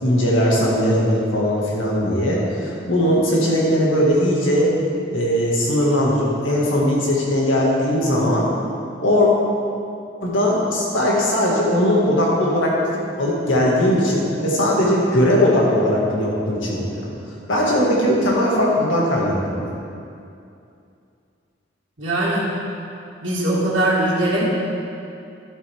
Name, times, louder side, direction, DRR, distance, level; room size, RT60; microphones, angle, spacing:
voice 1, 0.0-4.7 5.1-8.5 9.0-9.3 10.2-17.0 17.5-19.7, equal, 90° left, -4 dB, 2.1 m, -19 dB
voice 2, 22.0-22.5 23.2-24.4, right 1 dB, 90° right, -8 dB, 2.0 m, -20 dB
11.5 x 8.0 x 3.6 m, 2.5 s
head